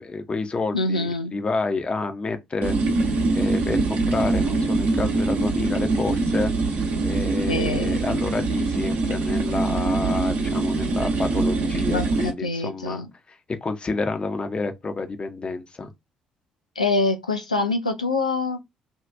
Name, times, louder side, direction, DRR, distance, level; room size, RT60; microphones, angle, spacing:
voice 1, 0.0-2.8 3.3-6.5 7.0-15.9, left 3 dB, 30° left, 0.6 m, -29 dB
voice 2, 0.7-1.3 7.5-8.0 11.9-13.1 16.8-18.7, left 3 dB, 85° left, 0.4 m, -25 dB
sound 1, 2.6-12.3, right 3 dB, 55° right, 0.9 m, -23 dB
2.6 x 2.4 x 3.3 m
figure-of-eight pair, 45°, 4 cm